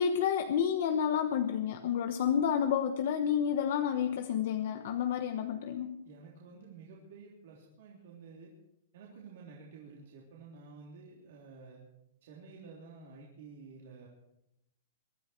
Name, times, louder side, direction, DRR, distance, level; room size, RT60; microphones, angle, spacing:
voice 1, 0.0-6.0, left 8 dB, 55° left, 6 dB, 1.0 m, -30 dB
voice 2, 6.0-8.5 8.9-11.8 12.2-14.1, right 4 dB, 60° right, -3 dB, 3.5 m, -51 dB
23.0 x 13.0 x 4.5 m, 0.85 s
supercardioid pair, 170°, 0 cm